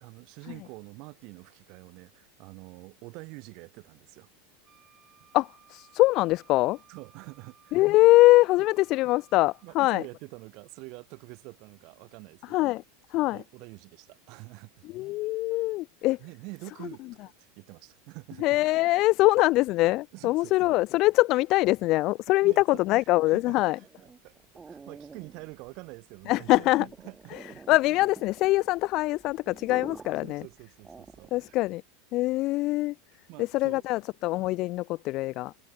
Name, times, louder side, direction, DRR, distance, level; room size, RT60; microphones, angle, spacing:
voice 1, 0.0-4.3 6.9-7.8 8.6-8.7 9.6-12.8 13.1-14.9 16.2-18.5 20.1-20.6 22.4-24.4 24.7-27.6 30.2-31.6 33.3-33.8, right 27 dB, 55° right, 3.1 m, -46 dB
Wind instrument woodwind instrument, 4.6-9.8, right 10 dB, 30° right, 2.9 m, -60 dB
voice 2, 5.3-6.8 7.7-10.0 12.5-12.8 13.1-13.4 14.9-16.2 18.4-23.8 26.3-26.8 27.7-30.4 31.3-31.8 32.1-32.9 33.4-35.5, left 19 dB, 50° left, 0.4 m, -23 dB
sound 1, 23.8-31.6, right 5 dB, 15° right, 2.0 m, -49 dB
supercardioid pair, 120°, 0 cm